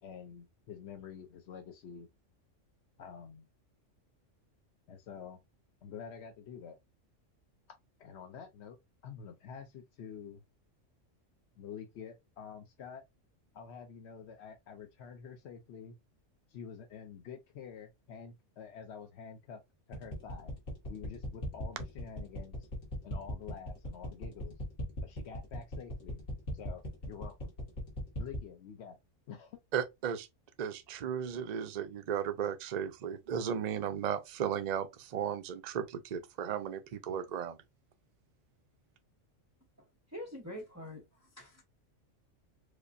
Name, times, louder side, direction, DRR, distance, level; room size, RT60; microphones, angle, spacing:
voice 1, 0.0-2.1 3.0-3.5 4.9-5.4 5.8-6.8 8.0-8.8 9.0-10.4 11.6-13.0 13.5-16.0 16.5-19.6 19.9-20.5 20.9-22.7 23.0-24.6 25.0-26.2 26.5-27.5 28.2-29.0 29.3-29.6, left 7 dB, 65° left, 0.8 m, -48 dB
sound 1, 19.9-28.5, equal, 85° left, 1.8 m, -39 dB
voice 2, 29.7-30.3 30.6-37.6, right 8 dB, 65° right, 0.4 m, -35 dB
voice 3, 40.1-41.0 41.4-41.6, left 1 dB, 15° right, 0.7 m, -44 dB
5.0 x 2.1 x 2.5 m
omnidirectional pair, 1.3 m